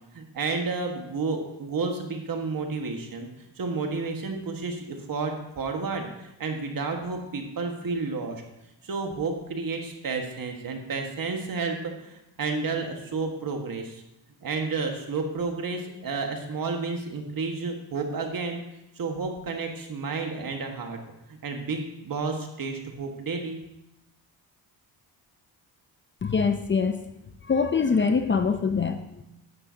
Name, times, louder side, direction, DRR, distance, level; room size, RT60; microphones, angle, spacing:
voice 1, 0.1-3.3 3.6-8.4 8.8-14.0 14.4-18.6 19.0-21.0 21.4-23.6, right 4 dB, 50° right, 3 dB, 1.7 m, -31 dB
voice 2, 26.2-27.0 27.4-29.2, left 5 dB, 25° left, 8 dB, 0.6 m, -24 dB
11.0 x 8.8 x 2.8 m, 0.88 s
cardioid pair, 80°, 43 cm